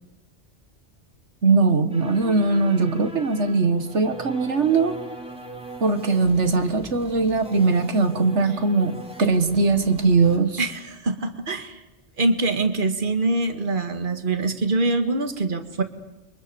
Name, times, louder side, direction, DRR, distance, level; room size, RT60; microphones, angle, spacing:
voice 1, 1.4-5.0 5.8-10.7, right 3 dB, 85° right, 9 dB, 1.9 m, -20 dB
sound 1, 1.9-10.4, right 2 dB, 5° right, 3.0 m, -39 dB
voice 2, 10.6-11.8 12.2-15.8, right 2 dB, 45° right, 8 dB, 1.9 m, -24 dB
30.0 x 24.0 x 7.0 m, 0.98 s
omnidirectional pair, 1.2 m